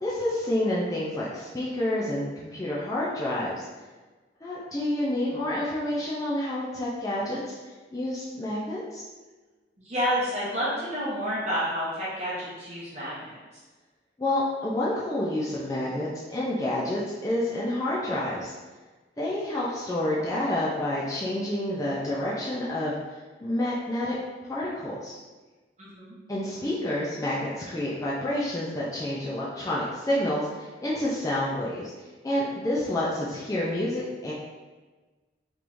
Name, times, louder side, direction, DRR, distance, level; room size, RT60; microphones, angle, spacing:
voice 1, 0.0-3.7 4.4-9.0 14.2-18.5 19.2-24.2 24.4-25.2 26.3-31.9 32.2-34.3, left 1 dB, 20° left, -7 dB, 0.4 m, -29 dB
voice 2, 9.8-13.4 25.8-26.2, equal, 35° right, -9 dB, 0.8 m, -29 dB
3.5 x 3.1 x 2.6 m, 1.3 s
head